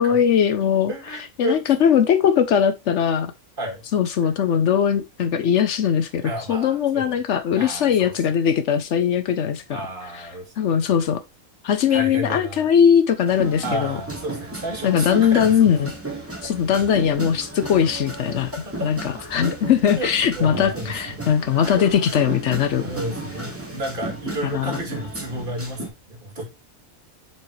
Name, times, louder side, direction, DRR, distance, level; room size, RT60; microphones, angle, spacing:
voice 1, 0.0-0.9 1.4-3.3 3.9-9.8 10.1-10.3 10.6-11.2 11.6-14.0 14.8-15.9 16.4-18.5 18.8-22.9 24.5-24.8, left 8 dB, 65° left, 0.9 m, -20 dB
voice 2, 0.9-1.6 3.6-3.8 4.2-4.3 6.2-7.2 7.5-8.1 9.7-10.9 11.9-12.7 13.6-15.5 18.7-19.1 19.9-20.1 20.3-21.3 21.6-21.8 22.8-26.5, right 1 dB, 35° right, 2.2 m, -32 dB
sound 1, 13.3-25.9, right 2 dB, 10° right, 1.3 m, -35 dB
7.1 x 4.7 x 3.1 m
omnidirectional pair, 1.5 m